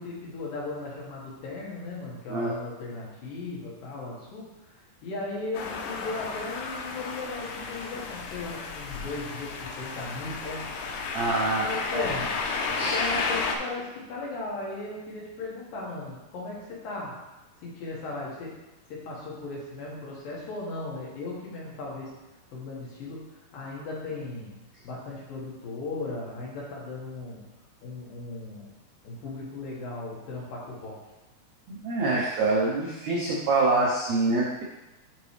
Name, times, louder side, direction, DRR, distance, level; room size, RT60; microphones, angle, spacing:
voice 1, 0.0-4.7 5.0-10.7 11.6-12.4 12.9-17.2 17.6-18.6 18.9-22.1 22.5-24.5 24.8-27.4 27.8-28.7 29.0-31.0, left 3 dB, 65° left, -4 dB, 3.1 m, -37 dB
sound 1, 5.5-13.6, left 4 dB, 85° left, 1.9 m, -32 dB
voice 2, 11.1-12.0 12.7-13.0 31.7-34.6, right 3 dB, 80° right, -4 dB, 1.6 m, -26 dB
10.5 x 3.9 x 3.3 m, 1.0 s
omnidirectional pair, 4.6 m